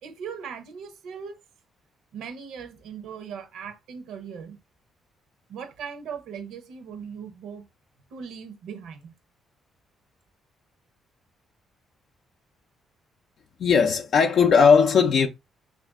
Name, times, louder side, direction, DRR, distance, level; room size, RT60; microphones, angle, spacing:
voice 1, 0.0-1.4 2.1-4.6 5.5-7.7 8.1-9.1, right 6 dB, 80° right, 0.8 m, -39 dB
voice 2, 13.6-15.3, left 6 dB, 65° left, 0.4 m, -18 dB
3.3 x 2.6 x 3.5 m
cardioid pair, 90°, 0 cm